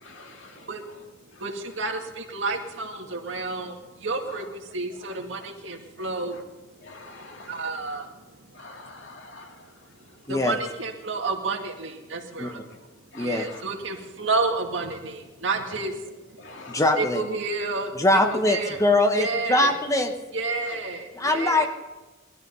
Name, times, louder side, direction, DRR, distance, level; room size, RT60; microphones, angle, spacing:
voice 1, 0.0-0.6 6.8-7.6 8.6-9.5 13.1-13.3 16.4-16.8, left 3 dB, 70° left, 1 dB, 2.6 m, -45 dB
voice 2, 1.4-6.4 7.5-8.1 10.3-12.6 13.2-15.9 17.0-18.8 19.1-19.8 20.3-21.7, right 3 dB, 70° right, 3 dB, 2.0 m, -30 dB
voice 3, 13.1-13.5 16.7-17.2 18.0-20.1 21.2-21.7, left 1 dB, 15° left, 5 dB, 1.1 m, -22 dB
19.5 x 12.5 x 5.6 m, 1.2 s
head